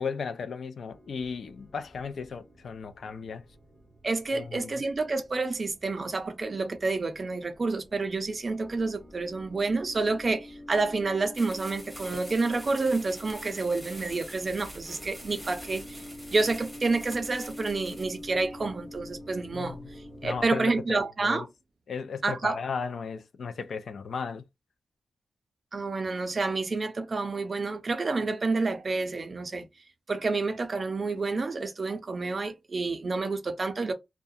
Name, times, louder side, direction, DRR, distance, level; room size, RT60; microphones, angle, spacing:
voice 1, 0.0-3.4 4.3-4.8 19.5-19.9 20.2-21.5 21.9-24.4, left 5 dB, 60° left, 0.3 m, -35 dB
sound 1, 0.9-20.5, left 1 dB, 20° left, 1.2 m, -47 dB
voice 2, 4.0-16.0 16.3-19.8 20.2-21.5 22.2-22.6 25.7-29.7 30.1-33.9, right 3 dB, 35° right, 0.5 m, -29 dB
sound 2, 11.3-18.2, equal, ahead, 1.1 m, -46 dB
2.3 x 2.1 x 2.6 m
wide cardioid pair, 145°, 0 cm